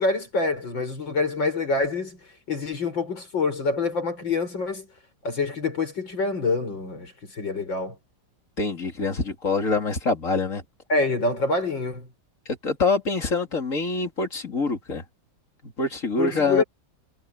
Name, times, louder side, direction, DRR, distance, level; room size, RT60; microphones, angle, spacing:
voice 1, 0.0-2.2 2.5-4.9 5.2-8.0 10.9-12.1 16.2-16.6, left 3 dB, 75° left, 6.9 m, -26 dB
voice 2, 8.6-10.6 12.6-15.0 15.8-16.6, left 3 dB, 40° left, 3.3 m, -25 dB
omnidirectional pair, 2.0 m